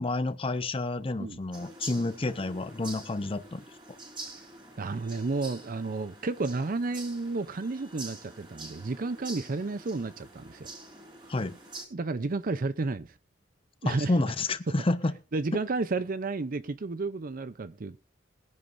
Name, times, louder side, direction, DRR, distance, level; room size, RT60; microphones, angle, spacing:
voice 1, 0.0-3.6 11.3-11.6 13.9-15.1, left 2 dB, 30° left, 0.7 m, -29 dB
sound 1, 1.5-11.8, right 2 dB, 25° right, 5.3 m, -46 dB
voice 2, 4.8-10.7 11.9-13.1 13.8-14.1 14.7-14.8 15.3-18.0, right 3 dB, 50° right, 0.6 m, -32 dB
21.0 x 10.5 x 2.6 m
head